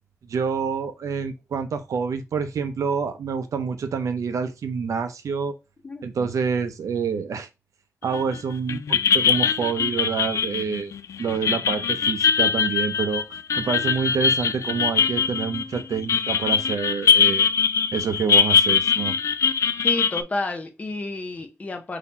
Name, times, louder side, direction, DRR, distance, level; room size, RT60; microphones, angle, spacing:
voice 1, 0.3-5.5 6.0-7.5 8.0-10.9 11.2-17.5 17.9-19.1, right 6 dB, 65° right, 0.6 m, -27 dB
voice 2, 5.8-6.3 19.8-22.0, left 2 dB, 25° left, 0.7 m, -31 dB
sound 1, 8.1-8.4 8.7-20.2, left 6 dB, 60° left, 0.3 m, -22 dB
4.0 x 2.8 x 4.1 m
wide cardioid pair, 175°, 6 cm